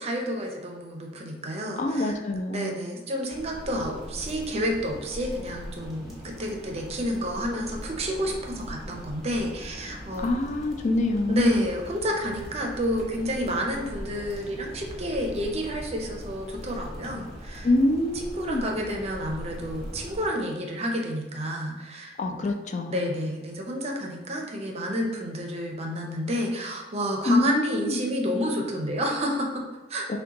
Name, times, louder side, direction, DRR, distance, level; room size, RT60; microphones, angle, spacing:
voice 1, 0.0-2.2 2.5-10.3 11.3-17.7 18.1-22.5 22.9-30.2, equal, 35° right, 1 dB, 0.6 m, -30 dB
voice 2, 1.8-2.7 10.2-11.6 17.6-18.7 22.2-23.2 27.3-28.1 30.1-30.2, left 2 dB, 40° left, 5 dB, 0.4 m, -25 dB
sound 1, 3.3-20.3, equal, ahead, 1.1 m, -41 dB
6.2 x 2.2 x 2.8 m, 1.2 s
head